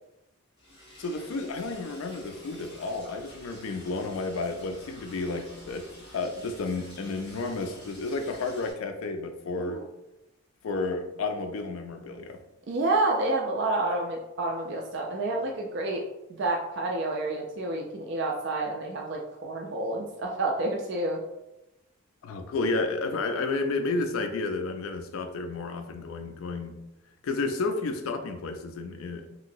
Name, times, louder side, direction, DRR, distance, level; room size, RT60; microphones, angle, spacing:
Liquid, 0.6-8.7, equal, 50° left, 0.9 m, -49 dB
voice 1, 1.0-9.8 10.6-12.4 22.2-26.8 27.2-29.3, left 3 dB, 75° left, 6 dB, 0.4 m, -31 dB
voice 2, 12.7-16.0 16.4-21.2, right 2 dB, 55° right, 0 dB, 0.3 m, -29 dB
3.0 x 2.8 x 2.5 m, 0.91 s
head